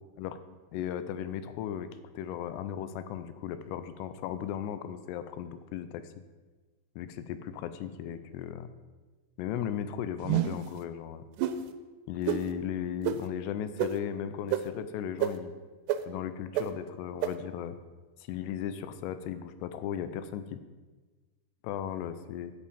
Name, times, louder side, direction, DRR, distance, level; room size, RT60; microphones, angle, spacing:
voice 1, 0.7-6.1 7.0-8.7 9.4-11.2 12.1-15.5 16.1-17.8 18.2-20.6 21.6-22.5, left 9 dB, 80° left, 11 dB, 2.6 m, -36 dB
sound 1, 10.2-10.7 11.4-11.6 12.3-12.4 13.0-13.2 13.8-13.9 14.5-14.6 15.2-15.3 15.9-16.0 16.6-16.7 17.2-17.3, right 12 dB, 80° right, 2.6 m, -27 dB
10.0 x 7.5 x 5.1 m, 1.3 s
omnidirectional pair, 5.0 m